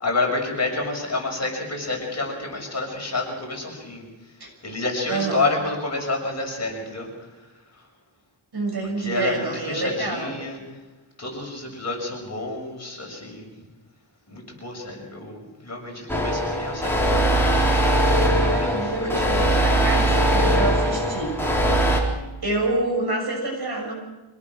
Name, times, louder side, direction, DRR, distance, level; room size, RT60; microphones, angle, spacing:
voice 1, 0.0-4.1 4.6-7.1 9.0-10.6 11.2-13.5 14.3-17.3 18.4-19.6, left 3 dB, 35° left, 0 dB, 6.5 m, -29 dB
voice 2, 5.1-5.5 8.5-10.4 18.4-21.4 21.7-23.9, right 2 dB, 50° right, 1 dB, 6.8 m, -28 dB
sound 1, 16.1-22.0, right 1 dB, 5° left, 4.0 m, -21 dB
25.5 x 18.5 x 6.3 m, 1.1 s
wide cardioid pair, 135°, 48 cm